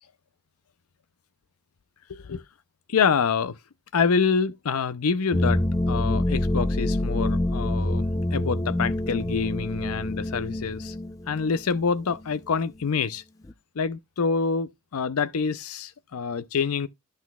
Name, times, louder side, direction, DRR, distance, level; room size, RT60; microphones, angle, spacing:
voice 1, 2.1-2.4 2.9-3.6 3.9-5.6 5.9-8.1 8.3-11.0 11.3-13.2 13.8-16.9, left 5 dB, 80° left, 0.6 m, -26 dB
sound 1, 5.3-11.8 12.1-12.2 13.4-13.5, left 1 dB, 15° left, 0.5 m, -26 dB
13.0 x 6.1 x 2.3 m
head